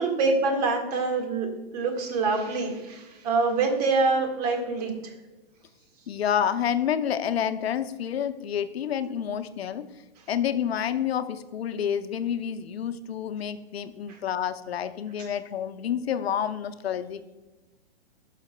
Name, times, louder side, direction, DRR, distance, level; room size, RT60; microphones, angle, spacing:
voice 1, 0.0-1.5 1.7-5.1 10.2-10.3 14.1-14.2 15.2-15.3, right 3 dB, 40° right, 3 dB, 1.6 m, -25 dB
voice 2, 6.1-9.9 10.3-17.2, left 9 dB, 80° left, 10 dB, 0.7 m, -29 dB
12.0 x 5.8 x 2.2 m, 1.1 s
hypercardioid pair, 145°, 31 cm